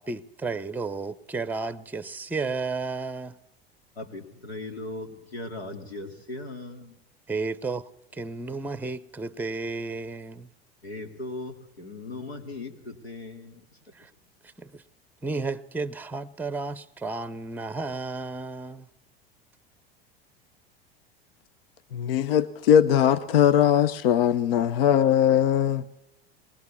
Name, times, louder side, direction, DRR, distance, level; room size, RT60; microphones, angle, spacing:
voice 1, 0.0-3.4 7.3-7.8 8.1-10.5 13.9-14.1 14.6-14.8 15.2-18.9, right 3 dB, 5° right, 0.7 m, -32 dB
voice 2, 4.0-7.0 10.8-13.7, left 2 dB, 90° left, 2.2 m, -38 dB
voice 3, 21.9-25.9, left 9 dB, 70° left, 0.8 m, -20 dB
21.0 x 19.0 x 7.0 m
hypercardioid pair, 85°, 31 cm